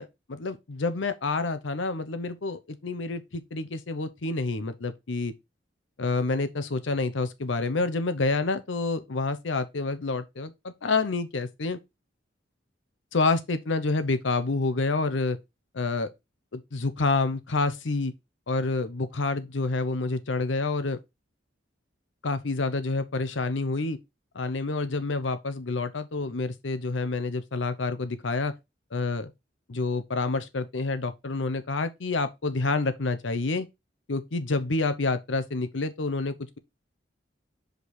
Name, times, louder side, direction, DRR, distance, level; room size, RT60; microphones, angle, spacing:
voice 1, 0.0-5.3 6.0-11.8 13.1-15.4 15.7-16.1 16.5-18.1 18.5-21.0 22.2-24.0 24.3-28.5 28.9-29.3 29.7-33.7 34.1-36.4, left 3 dB, 90° left, 0.8 m, -28 dB
5.2 x 4.7 x 4.3 m
head